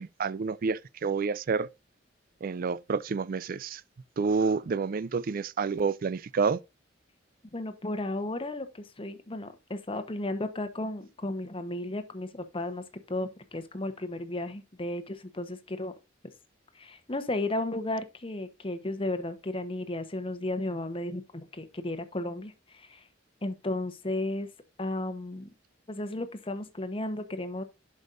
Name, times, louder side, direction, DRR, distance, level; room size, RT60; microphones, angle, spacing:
voice 1, 0.0-1.7 2.4-3.8 4.2-6.6, right 5 dB, 50° right, 0.4 m, -29 dB
voice 2, 7.5-15.9 16.7-23.0 23.4-24.5 24.8-25.5 25.9-27.6, left 1 dB, 30° left, 1.0 m, -34 dB
11.0 x 5.3 x 2.5 m
head